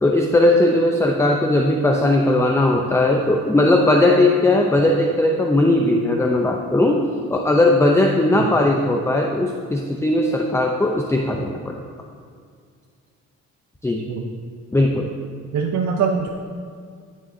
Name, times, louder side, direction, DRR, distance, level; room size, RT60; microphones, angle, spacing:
voice 1, 0.0-7.0 7.3-11.8 13.8-14.0 14.7-15.1, left 1 dB, 10° left, 1 dB, 0.6 m, -18 dB
voice 2, 15.5-16.3, right 6 dB, 65° right, 2 dB, 0.7 m, -22 dB
15.0 x 6.3 x 2.7 m, 2.1 s
cardioid pair, 90°, 30 cm